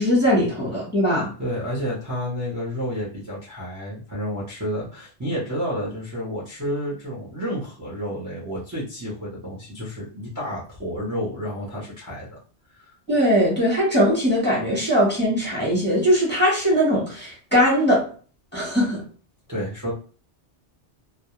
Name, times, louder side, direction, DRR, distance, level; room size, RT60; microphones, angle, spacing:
voice 1, 0.0-1.3 13.1-18.1 18.5-19.0, equal, 10° left, -5 dB, 1.0 m, -20 dB
voice 2, 1.4-12.4 12.8-12.9 19.5-19.9, equal, 20° right, -5 dB, 0.7 m, -30 dB
2.2 x 2.0 x 3.0 m, 0.39 s
omnidirectional pair, 1.2 m